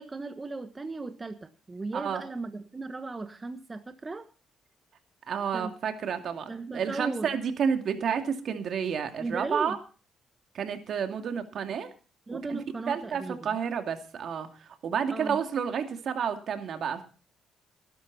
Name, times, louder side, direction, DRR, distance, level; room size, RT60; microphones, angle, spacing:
voice 1, 0.0-4.3 5.5-5.7 6.5-7.3 9.2-9.8 12.3-13.6 15.1-15.4, right 3 dB, 25° right, 8 dB, 1.3 m, -37 dB
voice 2, 1.9-2.2 5.3-9.8 10.5-11.9 12.3-12.6 12.9-17.0, right 7 dB, 60° right, 6 dB, 2.5 m, -30 dB
18.5 x 11.0 x 4.1 m, 0.35 s
cardioid pair, 90°, 0 cm